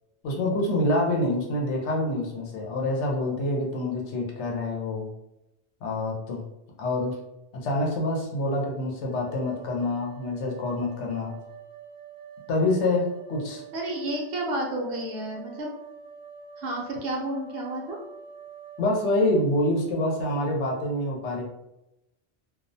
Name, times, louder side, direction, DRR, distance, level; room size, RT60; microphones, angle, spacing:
voice 1, 0.2-5.1 5.8-6.4 6.8-7.2 7.5-11.4 12.5-13.6 18.8-21.4, left 1 dB, 85° left, 0 dB, 0.9 m, -26 dB
sound 1, 9.1-18.9, right 6 dB, 50° left, 0.9 m, -46 dB
voice 2, 13.7-15.7 16.6-18.0, right 1 dB, 65° right, 0 dB, 0.7 m, -31 dB
2.3 x 2.0 x 2.6 m, 0.88 s
omnidirectional pair, 1.2 m